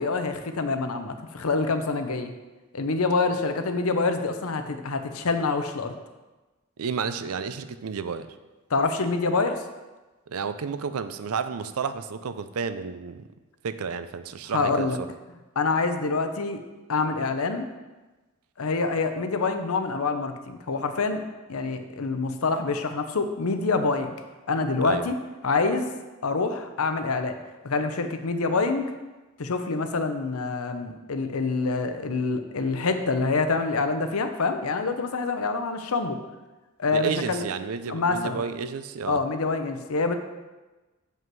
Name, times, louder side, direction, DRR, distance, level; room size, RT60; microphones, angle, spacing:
voice 1, 0.0-2.3 2.7-5.9 8.7-9.6 14.5-15.0 15.6-16.6 16.9-17.7 18.6-21.2 21.5-24.1 24.5-25.1 25.4-25.9 26.2-27.4 27.6-28.9 29.4-36.2 36.8-37.4 37.9-38.4 39.1-40.1, left 3 dB, 85° left, 7 dB, 0.7 m, -26 dB
voice 2, 6.8-8.3 10.3-13.2 13.6-15.1 24.8-25.1 36.9-39.2, right 5 dB, 90° right, 11 dB, 0.5 m, -31 dB
7.6 x 5.4 x 4.7 m, 1.2 s
head